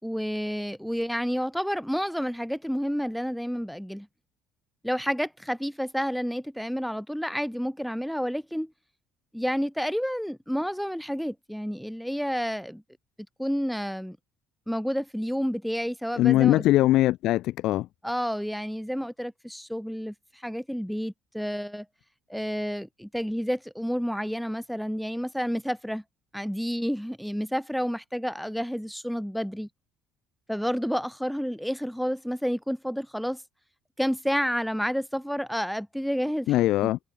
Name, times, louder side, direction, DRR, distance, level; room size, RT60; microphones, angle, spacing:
voice 1, 0.0-4.1 4.8-8.7 9.3-12.8 13.4-14.2 14.7-16.6 18.0-21.9 22.3-26.0 26.3-29.7 30.5-33.4 34.0-36.5 36.8-36.9, equal, ahead, 3.7 m, -30 dB
voice 2, 16.2-17.9 36.5-37.0, left 15 dB, 65° left, 4.4 m, -21 dB
cardioid pair, 130°, 0 cm